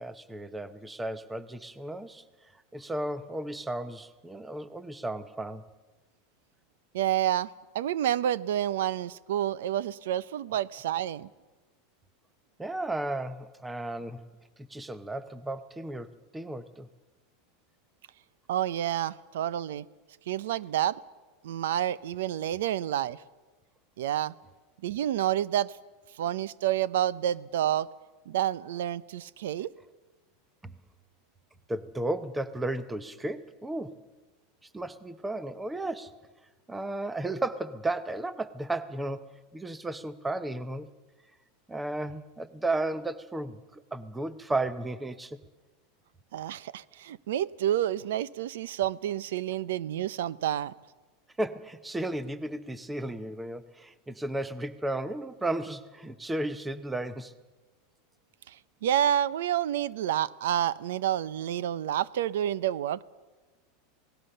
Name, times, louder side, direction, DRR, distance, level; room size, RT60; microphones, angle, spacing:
voice 1, 0.0-2.2 2.7-5.6 12.6-14.2 14.7-16.9 30.6-30.7 31.7-34.0 34.7-36.2 36.7-40.9 41.7-45.4 51.4-57.3, right 2 dB, 5° right, 14 dB, 0.7 m, -34 dB
voice 2, 6.9-7.5 7.7-11.3 18.5-19.8 20.3-21.0 21.4-23.2 24.0-24.3 24.8-25.7 26.2-27.9 28.3-29.7 46.3-50.7 58.5-58.6 58.8-63.0, right 11 dB, 85° right, 19 dB, 0.7 m, -29 dB
27.0 x 18.5 x 6.7 m, 1.2 s
supercardioid pair, 175°, 0 cm